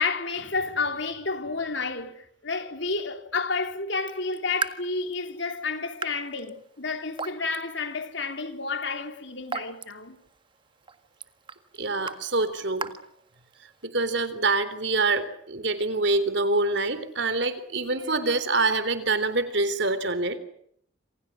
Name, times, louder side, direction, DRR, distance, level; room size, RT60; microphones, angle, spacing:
voice 1, 0.0-10.2, left 4 dB, 60° left, 3.2 m, -30 dB
Raindrop / Drip, 3.9-13.8, right 4 dB, 25° right, 1.6 m, -40 dB
voice 2, 11.8-12.9 13.8-20.4, right 3 dB, 60° right, 3.6 m, -25 dB
28.0 x 27.5 x 6.3 m
head